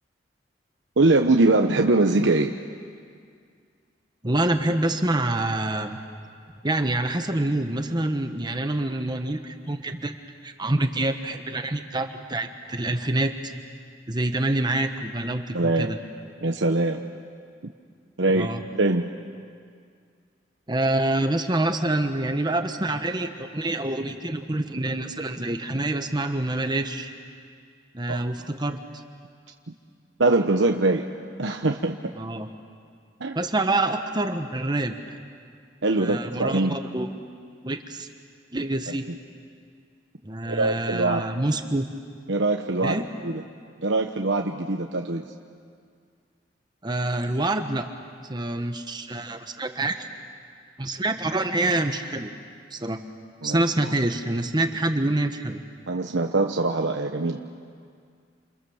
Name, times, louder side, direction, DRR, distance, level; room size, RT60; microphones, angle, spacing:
voice 1, 1.0-2.5 15.5-15.9 16.4-17.0 18.2-18.5 18.8-19.1 28.1-28.2 29.7-29.8 30.2-31.1 31.4-32.0 33.2-33.4 35.8-36.8 40.4-41.3 42.3-43.4 43.8-45.3 53.4-53.6 55.9-57.4, right 2 dB, 80° right, 3 dB, 1.1 m, -22 dB
voice 2, 4.2-6.0 6.6-10.1 10.4-13.5 14.1-16.0 18.3-18.6 20.7-27.1 27.9-28.8 32.2-32.5 33.3-34.9 36.0-37.1 37.6-38.1 38.5-39.1 40.2-41.9 42.8-43.0 46.8-47.9 48.2-50.1 50.8-52.3 52.7-53.0 53.4-55.6, right 2 dB, 25° right, 6 dB, 1.2 m, -26 dB
28.5 x 28.5 x 7.2 m, 2.2 s
head